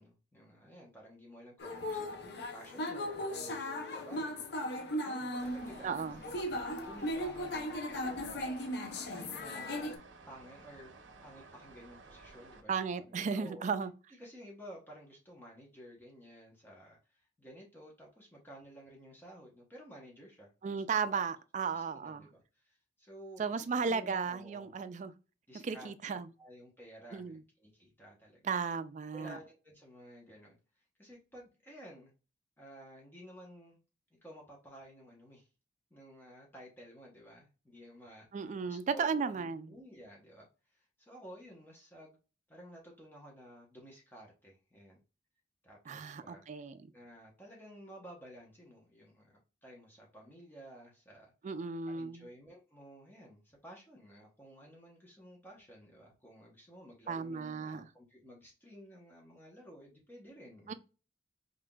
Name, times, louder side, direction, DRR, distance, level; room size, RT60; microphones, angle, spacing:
voice 1, 0.0-4.5 5.0-6.2 6.5-8.5 9.1-9.9 10.3-13.7 14.1-21.2 21.7-24.7 25.5-28.4 29.1-32.1 32.6-33.8 34.2-35.5 35.9-42.2 42.5-45.0 45.6-46.4 46.9-51.3 51.9-60.7, equal, 10° left, 0.9 m, -53 dB
sound 1, 1.6-10.0, left 1 dB, 60° left, 0.6 m, -37 dB
sound 2, 5.4-12.6, right 3 dB, 80° right, 0.6 m, -55 dB
voice 2, 5.8-6.2 12.7-13.9 20.6-22.3 23.4-25.1 25.6-26.3 27.1-27.4 28.4-29.4 38.3-39.7 45.9-46.7 51.4-52.3 57.1-57.9 60.7-60.8, right 5 dB, 40° right, 0.3 m, -35 dB
5.6 x 2.5 x 2.3 m
head